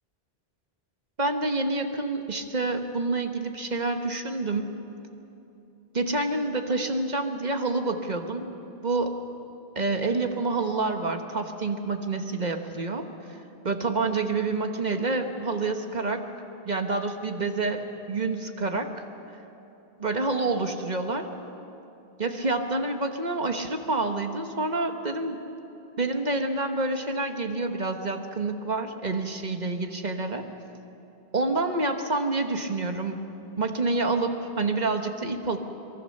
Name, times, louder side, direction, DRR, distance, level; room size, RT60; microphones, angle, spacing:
voice 1, 1.2-4.7 5.9-8.5 8.8-9.2 9.7-13.1 13.6-16.2 16.6-17.8 18.1-18.9 20.0-21.3 22.2-25.4 26.0-30.5 31.3-33.3 33.6-35.6, right 3 dB, 45° right, 5 dB, 1.5 m, -28 dB
23.5 x 23.0 x 6.7 m, 2.9 s
omnidirectional pair, 1.0 m